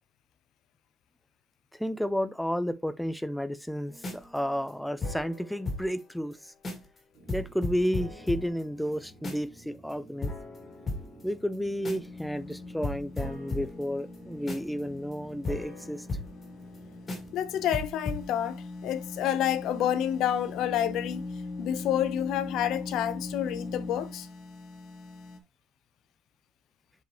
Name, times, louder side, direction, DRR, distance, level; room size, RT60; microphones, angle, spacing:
voice 1, 1.7-6.5 7.3-10.3 11.2-16.1, equal, ahead, 0.4 m, -32 dB
sound 1, 3.9-6.0 6.3-6.4 6.6-7.0 7.3-9.6 9.9-10.0 10.2-12.2 12.5-12.6 12.8-16.8 17.1-17.4 17.7-18.2, left 2 dB, 30° left, 2.4 m, -37 dB
sound 2, 7.1-17.8, right 1 dB, 75° right, 2.6 m, -54 dB
sound 3, 11.5-25.4, left 3 dB, 55° left, 1.4 m, -41 dB
voice 2, 17.3-21.2 21.6-24.3, left 10 dB, 75° left, 0.8 m, -29 dB
7.8 x 5.2 x 3.1 m
cardioid pair, 145°, 0 cm